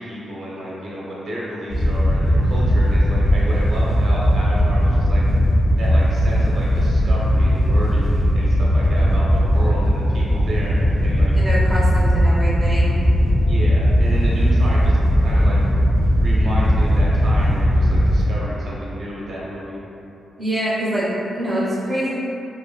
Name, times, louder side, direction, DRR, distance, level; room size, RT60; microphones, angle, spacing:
voice 1, 0.0-5.2 5.8-11.3 13.5-15.6 16.2-19.8, equal, 60° right, -6 dB, 0.6 m, -31 dB
Wind / Boat Water vehicle, 1.7-18.2, equal, 40° left, 0.5 m, -17 dB
voice 2, 11.4-12.9 20.4-22.1, equal, 15° right, -8 dB, 0.5 m, -25 dB
3.1 x 2.2 x 2.2 m, 2.9 s
wide cardioid pair, 145°, 0 cm